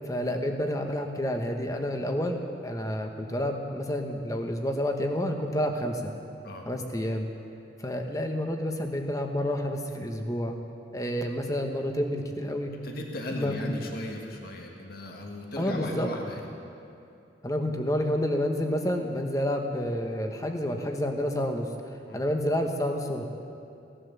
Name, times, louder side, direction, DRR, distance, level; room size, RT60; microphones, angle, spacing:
voice 1, 0.0-6.1 6.7-7.3 7.8-10.6 10.9-12.7 13.3-13.5 15.6-16.1 17.4-21.7 22.1-23.3, equal, 20° left, 4 dB, 1.1 m, -29 dB
voice 2, 12.8-16.5 22.1-22.2, left 1 dB, 55° left, 1 dB, 1.6 m, -37 dB
17.0 x 11.5 x 6.9 m, 2.7 s
head